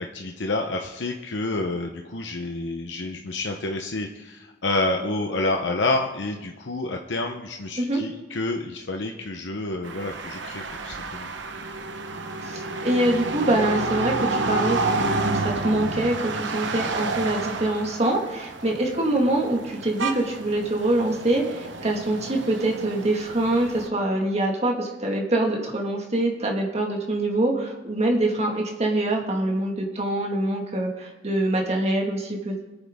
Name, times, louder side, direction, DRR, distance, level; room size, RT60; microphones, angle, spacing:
voice 1, 0.0-11.3, left 2 dB, 70° left, 3 dB, 0.9 m, -29 dB
sound 1, 9.8-23.9, right 3 dB, 80° right, 1.0 m, -30 dB
voice 2, 12.4-32.6, right 1 dB, 35° right, 1 dB, 1.8 m, -24 dB
22.5 x 8.9 x 3.6 m, 1.1 s
head